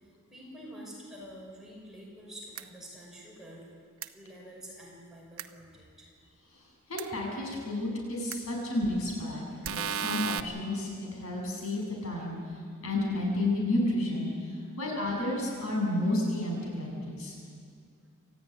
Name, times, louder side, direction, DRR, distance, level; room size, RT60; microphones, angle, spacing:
voice 1, 0.3-3.7 4.1-6.1, equal, ahead, -4 dB, 6.1 m, -47 dB
sound 1, 2.5-2.6 4.0-4.1 5.4-5.5 7.0-7.1 8.3-8.4 9.6-10.4, right 8 dB, 65° right, 0.9 m, -32 dB
voice 2, 6.9-12.4 12.8-14.3 14.8-17.3, left 1 dB, 70° left, -1 dB, 7.7 m, -31 dB
26.5 x 15.0 x 9.9 m, 2.2 s
head